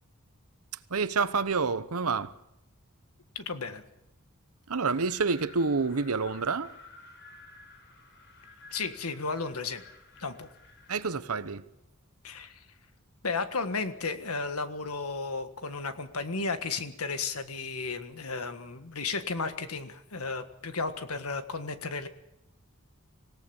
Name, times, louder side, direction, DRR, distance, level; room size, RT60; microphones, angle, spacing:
voice 1, 0.9-2.3 4.7-6.7 10.9-11.6, right 4 dB, 80° right, 14 dB, 1.0 m, -28 dB
voice 2, 3.3-3.8 8.7-9.8 10.2-10.5 12.2-12.6 13.2-22.1, left 4 dB, 80° left, 9 dB, 1.6 m, -34 dB
Wind, 4.7-11.2, left 3 dB, 55° left, 4.3 m, -53 dB
26.0 x 17.0 x 7.1 m, 0.84 s
head